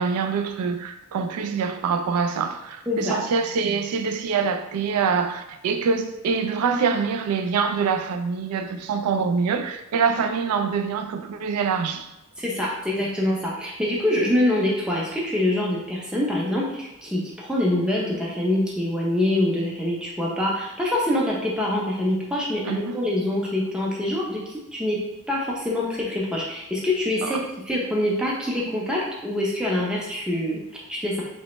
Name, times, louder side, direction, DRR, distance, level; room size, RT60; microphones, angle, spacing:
voice 1, 0.0-12.1 13.0-13.1 22.6-23.0 27.2-27.4, right 5 dB, 90° right, 0.3 m, -25 dB
voice 2, 2.9-3.2 12.4-25.0 25.3-27.4 27.7-31.2, left 1 dB, 5° right, 0.5 m, -25 dB
3.2 x 2.1 x 2.9 m
head